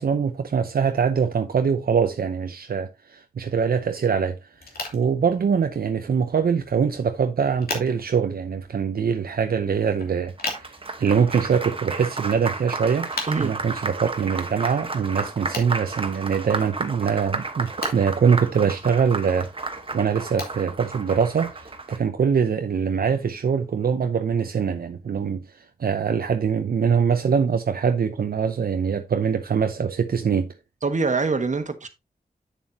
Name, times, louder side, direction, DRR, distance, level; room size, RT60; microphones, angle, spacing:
voice 1, 0.0-4.4 4.9-10.7 11.0-13.1 13.4-19.5 19.9-25.4 25.8-30.5, right 6 dB, 80° right, 0.7 m, -23 dB
sound 1, 4.5-21.8, left 2 dB, 80° left, 2.8 m, -40 dB
Applause, 10.3-22.0, right 3 dB, 35° right, 1.2 m, -32 dB
voice 2, 30.8-31.9, right 4 dB, 55° right, 1.3 m, -24 dB
8.5 x 7.2 x 2.8 m
wide cardioid pair, 80°, 15 cm